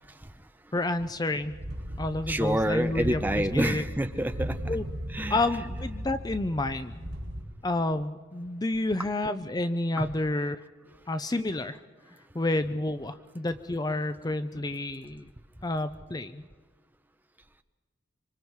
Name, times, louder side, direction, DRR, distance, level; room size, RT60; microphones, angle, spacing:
voice 1, 0.7-1.6 2.0-3.8 4.7-4.8 5.3-7.1 7.6-10.6 11.1-11.8 12.3-15.3 15.6-16.4, left 2 dB, 20° left, 11 dB, 0.5 m, -29 dB
sound 1, 1.4-7.4, equal, 60° right, 3.2 m, -37 dB
voice 2, 2.3-4.6 5.1-5.4 10.0-10.1 14.5-14.6, right 1 dB, 10° right, 9 dB, 0.8 m, -28 dB
26.0 x 25.0 x 4.7 m, 1.5 s
head